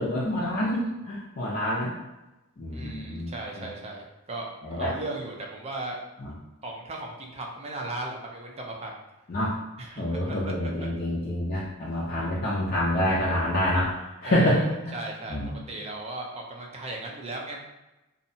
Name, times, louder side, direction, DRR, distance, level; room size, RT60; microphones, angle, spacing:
voice 1, 0.0-1.9 2.6-3.7 4.6-4.9 6.2-6.3 9.3-9.6 10.0-14.9 15.3-15.6, left 1 dB, 40° left, -7 dB, 0.4 m, -27 dB
voice 2, 2.7-6.0 6.6-9.0 9.8-10.9 14.2-15.4 15.7-17.6, right 2 dB, 30° right, 0 dB, 0.4 m, -37 dB
2.7 x 2.1 x 2.6 m, 1.0 s
head